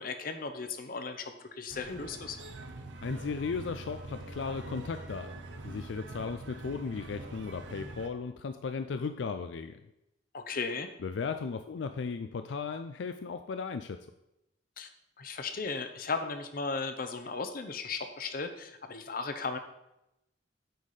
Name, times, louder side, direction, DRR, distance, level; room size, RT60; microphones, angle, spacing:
voice 1, 0.0-2.4 10.3-10.9 14.8-14.9 15.2-19.6, left 4 dB, 55° left, 8 dB, 0.8 m, -36 dB
sound 1, 1.7-8.1, right 2 dB, 80° right, 0.8 m, -44 dB
voice 2, 3.0-9.8 11.0-14.0, left 5 dB, 80° left, 8 dB, 0.4 m, -36 dB
9.0 x 4.2 x 4.8 m, 0.87 s
head